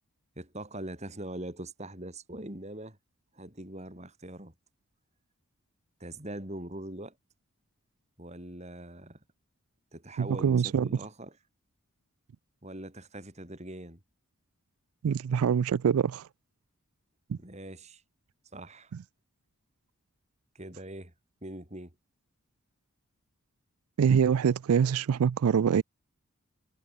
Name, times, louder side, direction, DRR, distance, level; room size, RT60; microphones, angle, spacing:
voice 1, 0.4-3.0 3.3-4.5 6.0-7.2 8.2-9.2 9.9-11.4 12.6-14.0 17.4-18.0 18.5-18.9 20.6-21.1 21.4-21.9, right 1 dB, 30° right, 3.5 m, -42 dB
voice 2, 10.2-10.9 15.0-16.3 17.3-17.4 24.0-25.8, right 7 dB, 80° right, 0.4 m, -24 dB
head